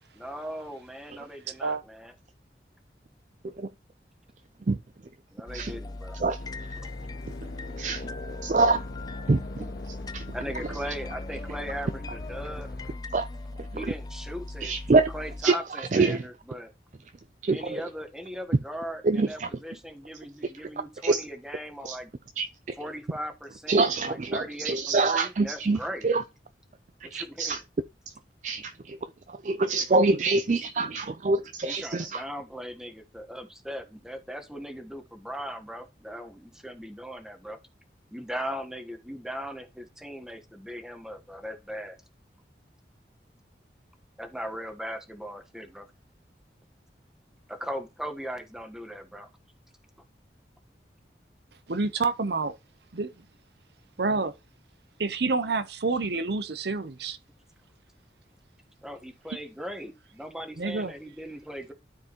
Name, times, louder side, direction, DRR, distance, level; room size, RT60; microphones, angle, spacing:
voice 1, 0.1-2.1 5.3-6.2 10.3-12.7 13.7-16.7 17.5-22.1 22.8-26.1 27.1-27.6 31.7-37.6 38.1-42.0 44.2-45.9 47.5-49.3 58.8-61.7, equal, 5° right, 1.2 m, -39 dB
sound 1, 5.5-15.4, left 2 dB, 20° left, 0.5 m, -39 dB
sound 2, 6.4-13.0, left 2 dB, 70° left, 0.8 m, -43 dB
voice 2, 7.8-8.1 8.4-8.8 9.3-10.2 13.1-13.3 14.6-15.1 15.4-16.2 17.4-17.8 19.0-19.5 21.0-21.2 21.8-22.0 22.4-22.8 23.7-26.2 27.0-27.6 28.4-29.0 29.3-32.2, right 3 dB, 45° right, 0.4 m, -25 dB
voice 3, 51.7-52.5 52.9-53.1 54.0-54.3 55.0-57.2 60.6-60.9, right 3 dB, 70° right, 0.7 m, -28 dB
12.5 x 4.7 x 3.0 m
head